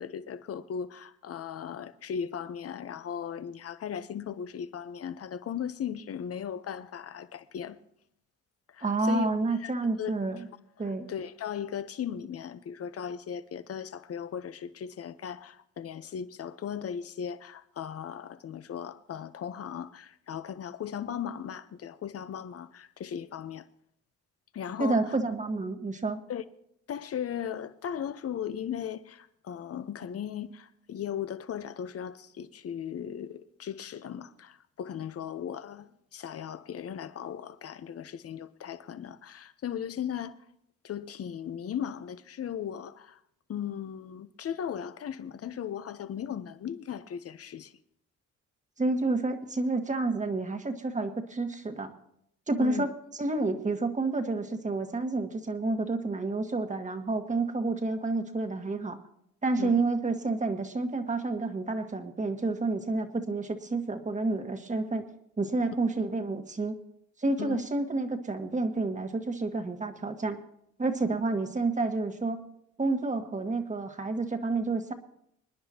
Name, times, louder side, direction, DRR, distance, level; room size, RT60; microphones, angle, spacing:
voice 1, 0.0-7.8 8.7-9.3 9.6-9.7 10.0-10.1 11.1-23.6 24.5-25.1 26.3-26.4 26.9-40.4 40.8-43.2 43.5-47.7 52.6-52.9 59.6-59.8 67.4-67.6, left 8 dB, 50° left, 0.9 m, -37 dB
voice 2, 8.8-10.5 10.8-11.1 24.8-26.2 48.8-51.9 52.5-52.9 53.2-59.0 59.4-65.1 65.4-66.7 67.2-70.4 70.8-72.4 72.8-74.9, right 3 dB, 25° right, 1.6 m, -29 dB
26.0 x 10.0 x 2.9 m
cardioid pair, 90°, 30 cm